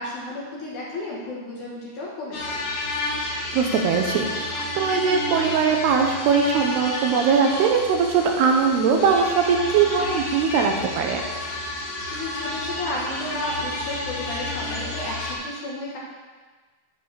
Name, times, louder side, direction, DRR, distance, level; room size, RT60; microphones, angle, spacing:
voice 1, 0.0-2.6 12.1-16.0, left 1 dB, 60° left, -5 dB, 2.2 m, -33 dB
sound 1, 2.3-15.3, left 2 dB, 75° left, 4.3 m, -30 dB
voice 2, 3.5-11.2, right 6 dB, 80° right, 3 dB, 2.7 m, -21 dB
10.5 x 4.7 x 6.8 m, 1.3 s
omnidirectional pair, 4.9 m